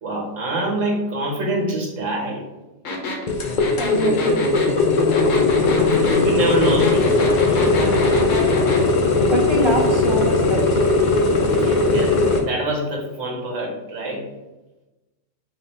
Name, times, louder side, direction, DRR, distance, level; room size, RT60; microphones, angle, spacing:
voice 1, 0.0-2.5 6.0-7.0 7.5-7.8 11.6-12.2 12.4-14.2, right 1 dB, 90° right, -1 dB, 1.5 m, -25 dB
sound 1, 2.9-8.8, left 3 dB, 85° left, 1.2 m, -28 dB
sound 2, 3.3-12.4, left 3 dB, 50° left, 0.6 m, -18 dB
voice 2, 3.8-4.4 9.3-10.9, right 1 dB, 35° right, 0 dB, 0.4 m, -25 dB
3.8 x 2.7 x 4.2 m, 1.0 s
omnidirectional pair, 1.3 m